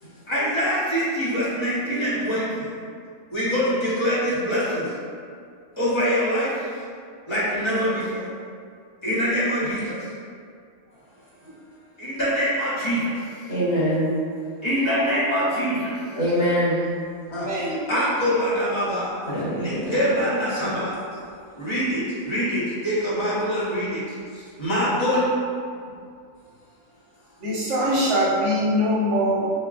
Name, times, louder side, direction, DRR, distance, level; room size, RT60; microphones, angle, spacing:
voice 1, 0.3-2.7 3.3-4.9 5.8-6.7 7.3-8.3 9.0-10.1 12.0-13.2 14.6-16.0 17.3-19.2 19.6-21.0 21.6-25.3, equal, 25° left, -9 dB, 0.9 m, -24 dB
voice 2, 13.5-14.1 16.1-16.8 19.3-20.1 20.5-20.8, equal, 70° left, -11 dB, 1.8 m, -24 dB
voice 3, 17.5-17.8 27.4-29.5, equal, 60° right, -7 dB, 1.0 m, -22 dB
5.6 x 2.2 x 2.4 m, 2.2 s
omnidirectional pair, 1.5 m